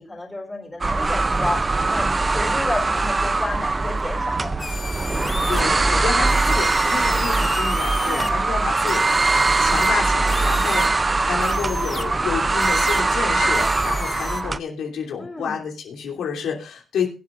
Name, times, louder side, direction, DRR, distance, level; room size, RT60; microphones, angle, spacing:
voice 1, 0.0-1.6 1.9-4.5 5.2-5.4 5.8-6.1 6.4-6.5 8.0-8.4 10.4-10.9 15.2-15.6, left 2 dB, 15° left, 2 dB, 3.7 m, -31 dB
sound 1, 0.8-14.6, right 3 dB, 25° right, 0.5 m, -21 dB
sound 2, 4.6-5.6 6.3-8.3 8.8-10.9 11.4-12.1 12.6-13.0 13.5-14.4, left 4 dB, 35° left, 1.4 m, -35 dB
voice 2, 5.5-9.0 9.6-17.1, left 7 dB, 75° left, 1 dB, 2.9 m, -29 dB
22.5 x 8.2 x 2.5 m, 0.33 s
cardioid pair, 90°, 0 cm